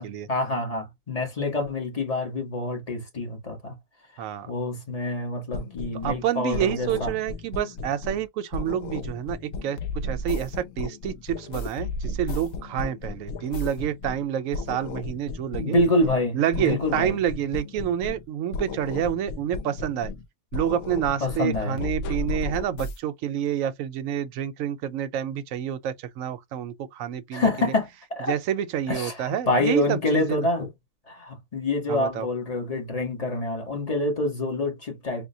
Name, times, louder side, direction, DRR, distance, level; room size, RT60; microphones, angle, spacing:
voice 1, 0.0-3.8 4.5-7.1 15.6-17.2 21.2-21.8 27.3-28.3 28.9-30.7 31.1-35.3, left 2 dB, 25° left, 1.2 m, -27 dB
voice 2, 4.2-4.5 6.0-15.8 16.3-20.1 20.5-27.7 28.3-30.5 31.9-32.3, right 10 dB, 70° right, 0.9 m, -28 dB
sound 1, 5.5-6.3 6.5-8.3 8.5-14.3 14.5-16.3 16.5-18.3 18.5-20.3 20.5-23.0, left 3 dB, 75° left, 1.0 m, -34 dB
3.6 x 2.5 x 2.7 m
omnidirectional pair, 1.6 m